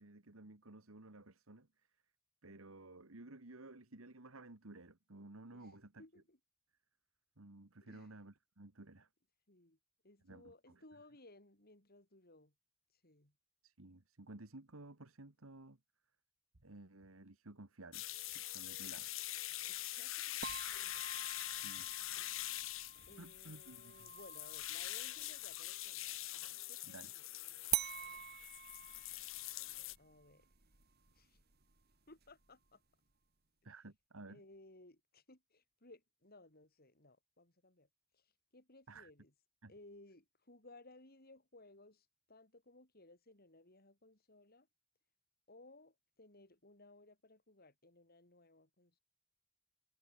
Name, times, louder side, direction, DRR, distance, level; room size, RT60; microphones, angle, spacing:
voice 1, 0.0-1.9 2.4-6.0 7.4-9.1 10.2-10.8 13.6-15.8 16.6-19.1 21.4-21.9 23.2-24.1 26.8-27.2 33.6-34.4 38.9-39.1 39.6-39.7, right 2 dB, 85° right, 2.0 m, -55 dB
voice 2, 5.5-6.4 7.8-8.1 9.5-9.8 10.0-12.5 12.9-13.4 19.7-20.4 23.1-26.1 26.7-27.4 28.2-28.4 30.0-30.5 31.1-31.4 32.1-32.8 34.3-37.9 38.1-39.3 39.7-44.7 45.5-49.0, left 2 dB, 50° left, 7.0 m, -61 dB
sound 1, 17.9-30.0, left 14 dB, 70° left, 2.5 m, -44 dB
sound 2, 20.4-26.0 27.7-32.7, right 12 dB, 50° right, 3.6 m, -46 dB
head